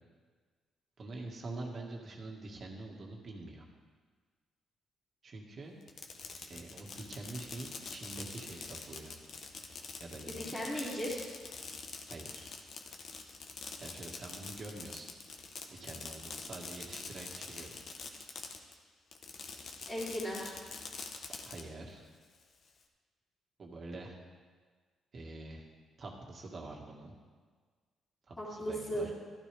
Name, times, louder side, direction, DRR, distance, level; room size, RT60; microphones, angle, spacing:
voice 1, 1.0-3.6 5.2-5.8 6.5-9.2 10.0-10.6 12.1-12.6 13.8-15.1 15.7-18.2 21.5-22.0 23.6-24.2 25.1-25.7 26.0-27.1 28.3-29.1, right 2 dB, 45° right, 0 dB, 1.9 m, -46 dB
Fireworks, 5.8-18.7 19.1-21.6, left 4 dB, 55° left, 1.1 m, -45 dB
voice 2, 10.3-11.2 19.9-20.6 28.4-29.1, equal, 20° left, -9 dB, 3.2 m, -36 dB
12.5 x 11.5 x 3.5 m, 1.5 s
cardioid pair, 90°, 0 cm